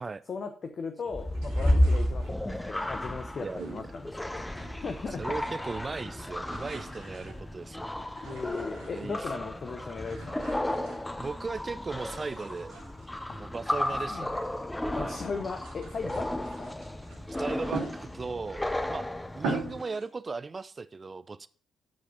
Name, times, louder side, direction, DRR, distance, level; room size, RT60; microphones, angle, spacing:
voice 1, 0.3-4.4 4.8-5.2 8.2-10.8 14.1-14.3 15.0-16.7, left 4 dB, 45° left, 7 dB, 0.9 m, -37 dB
sound 1, 1.1-19.8, left 1 dB, 10° left, 0.9 m, -33 dB
sound 2, 1.3-2.6 3.6-5.0 5.3-5.9 6.2-9.3 9.9-11.5 11.9-14.5 14.9-18.5 18.9-19.0 19.3-20.1, right 3 dB, 70° right, 3.0 m, -42 dB
voice 2, 3.4-3.9 5.2-7.9 8.9-9.2 11.2-12.7 13.3-14.4 14.9-15.2 17.4-19.1 19.4-21.5, right 4 dB, 30° right, 15 dB, 0.5 m, -37 dB
12.0 x 5.1 x 5.6 m, 0.43 s
figure-of-eight pair, 40°, 0 cm